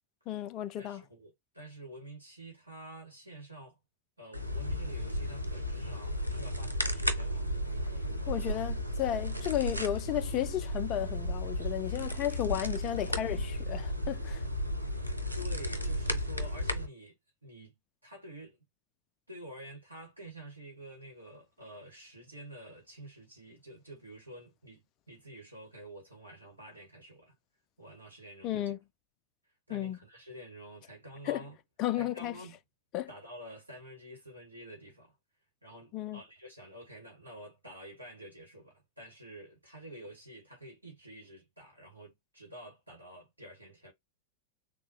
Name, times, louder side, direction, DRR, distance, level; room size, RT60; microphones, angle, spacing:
voice 1, 0.3-1.0 8.3-14.4 28.4-28.8 29.7-30.0 31.3-31.4 31.8-32.3 32.9-33.1 35.9-36.2, left 12 dB, 35° left, 0.3 m, -33 dB
voice 2, 0.8-3.8 4.2-8.7 15.4-17.1 17.4-18.6 19.3-27.3 27.8-28.7 29.7-31.6 32.0-32.6 33.1-35.2 35.6-43.9, right 1 dB, 85° right, 1.4 m, -49 dB
sound 1, 4.3-16.9, equal, 90° left, 0.6 m, -34 dB
3.5 x 2.3 x 3.0 m
figure-of-eight pair, 90°, 0 cm